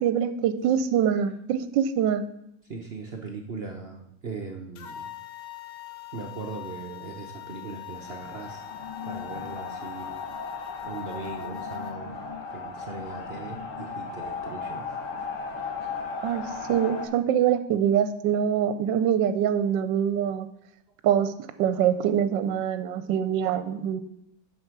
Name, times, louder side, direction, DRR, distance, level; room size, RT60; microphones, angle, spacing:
voice 1, 0.0-2.2 16.2-20.5 21.0-21.3 21.6-24.0, right 9 dB, 80° right, 11 dB, 1.2 m, -24 dB
voice 2, 2.7-5.1 6.1-8.6 9.0-10.2 10.8-12.2 12.5-14.9, right 4 dB, 55° right, 2 dB, 0.7 m, -39 dB
sound 1, 4.8-11.9, left 13 dB, 85° left, 0.6 m, -42 dB
sound 2, 7.9-17.1, left 4 dB, 50° left, 1.3 m, -36 dB
7.8 x 5.9 x 5.9 m, 0.79 s
omnidirectional pair, 2.0 m